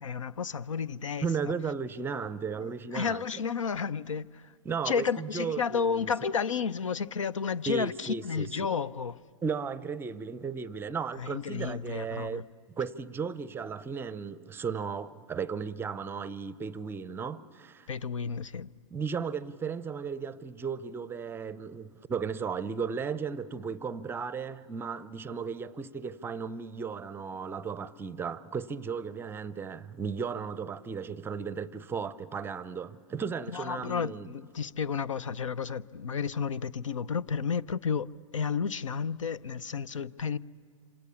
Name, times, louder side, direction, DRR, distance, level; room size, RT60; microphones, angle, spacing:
voice 1, 0.0-1.3 2.6-4.5 4.8-9.1 11.2-12.4 17.9-18.7 33.5-38.1 38.3-40.4, left 6 dB, 85° left, 0.6 m, -32 dB
voice 2, 1.2-3.2 4.6-6.1 7.7-8.7 9.4-12.4 12.8-17.9 18.9-34.3, right 6 dB, 15° right, 0.6 m, -35 dB
27.0 x 26.5 x 7.0 m
hypercardioid pair, 120°, 16 cm